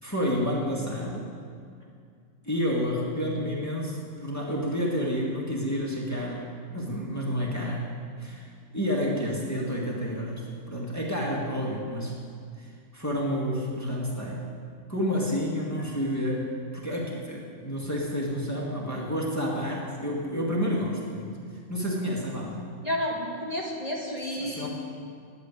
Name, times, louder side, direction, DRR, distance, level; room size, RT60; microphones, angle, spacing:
voice 1, 0.0-1.3 2.4-7.9 8.2-12.1 12.6-14.5 14.9-21.3 21.7-22.6 24.3-24.7, equal, 10° left, -4 dB, 1.8 m, -30 dB
voice 2, 22.8-24.7, left 1 dB, 30° right, -4 dB, 1.7 m, -31 dB
10.0 x 8.9 x 9.4 m, 2.3 s
omnidirectional pair, 1.4 m